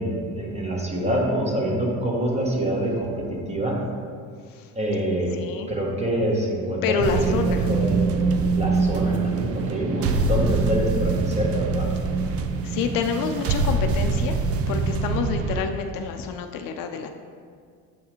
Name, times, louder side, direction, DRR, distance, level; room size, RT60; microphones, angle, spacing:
voice 1, 0.0-3.8 4.7-5.3 5.7-7.4 7.7-8.0 8.5-11.9, right 1 dB, 20° right, -2 dB, 1.2 m, -26 dB
voice 2, 5.3-5.7 6.8-7.7 12.6-14.4 14.7-17.1, left 6 dB, 65° left, 6 dB, 0.5 m, -27 dB
sound 1, 7.0-15.6, right 4 dB, 40° right, 0.4 m, -24 dB
7.1 x 4.7 x 3.0 m, 2.1 s
cardioid pair, 105°, 37 cm